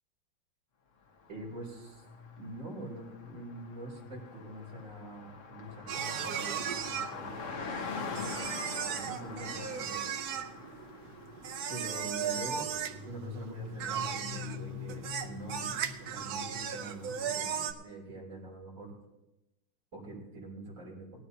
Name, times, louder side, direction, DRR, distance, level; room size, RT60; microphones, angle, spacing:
Car passing by, 1.1-17.2, left 5 dB, 50° left, 1.1 m, -44 dB
voice 1, 1.3-2.0 2.4-7.5 7.8-8.5 8.9-10.0 11.7-12.7 13.0-15.7 16.0-18.9 19.9-21.1, right 1 dB, 35° right, -5 dB, 3.6 m, -44 dB
sound 1, 5.9-17.7, right 8 dB, 60° right, 1.0 m, -37 dB
19.0 x 12.5 x 2.8 m, 0.97 s
omnidirectional pair, 2.3 m